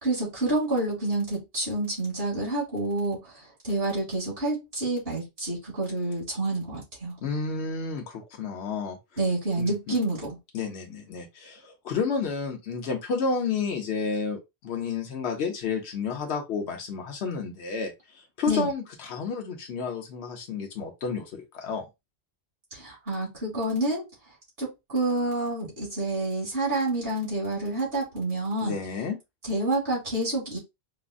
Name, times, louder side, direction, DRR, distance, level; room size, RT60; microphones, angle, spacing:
voice 1, 0.0-7.1 9.2-10.4 18.5-18.7 22.7-24.1 24.6-28.7 29.5-30.6, right 2 dB, 65° right, 2.6 m, -28 dB
voice 2, 7.2-9.0 9.6-10.0 10.5-21.9 28.6-29.2, left 5 dB, 80° left, 1.0 m, -31 dB
4.7 x 2.0 x 2.5 m
omnidirectional pair, 1.1 m